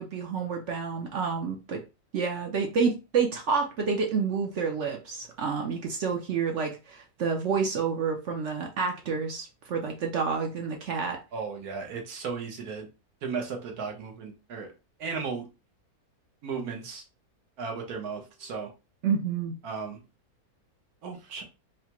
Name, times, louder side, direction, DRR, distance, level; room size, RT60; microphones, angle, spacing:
voice 1, 0.0-1.8 2.1-11.2 19.0-19.5, right 5 dB, 60° right, 2 dB, 0.9 m, -29 dB
voice 2, 11.3-12.9 13.2-14.7 15.0-15.5 16.4-17.0 17.6-18.7 19.6-20.0 21.0-21.4, right 5 dB, 80° right, 2 dB, 1.4 m, -35 dB
4.7 x 2.1 x 2.9 m, 0.28 s
omnidirectional pair, 1.6 m